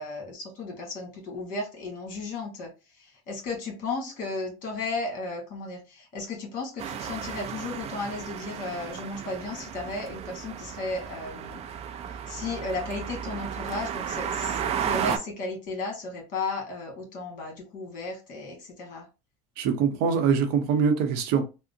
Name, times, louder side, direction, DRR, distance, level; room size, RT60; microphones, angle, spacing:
voice 1, 0.0-2.7 3.0-11.6 12.3-19.0, left 3 dB, 55° left, 1.7 m, -34 dB
sound 1, 6.8-15.2, right 8 dB, 40° right, 0.4 m, -34 dB
voice 2, 19.6-21.4, right 6 dB, 70° right, 0.8 m, -23 dB
3.6 x 2.1 x 2.6 m
supercardioid pair, 115°, 17 cm